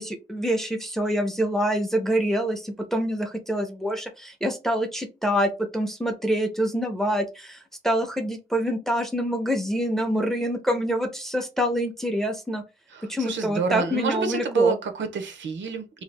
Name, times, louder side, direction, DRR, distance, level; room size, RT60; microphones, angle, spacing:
voice 1, 0.0-7.6 7.8-12.6 13.0-14.8, equal, ahead, 0.5 m, -26 dB
voice 2, 12.9-16.0, right 4 dB, 80° right, 0.6 m, -27 dB
2.7 x 2.3 x 3.2 m
wide cardioid pair, 160°, 19 cm